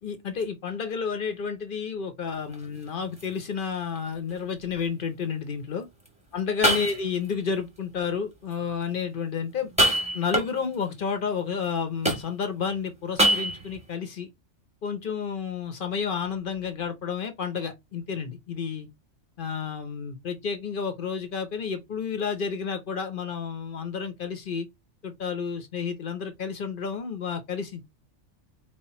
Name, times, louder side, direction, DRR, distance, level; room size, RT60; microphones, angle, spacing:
voice 1, 0.0-5.8 6.3-9.7 10.1-14.3 14.8-18.9 19.4-24.7 25.0-27.8, left 6 dB, 50° left, 0.9 m, -31 dB
sound 1, 2.3-2.6 3.2-3.3 4.0-4.1 6.1-6.2 6.6-7.3 9.6-10.8 12.0-12.6 13.2-13.8, right 1 dB, 5° right, 1.1 m, -24 dB
4.3 x 2.1 x 4.2 m
omnidirectional pair, 1.2 m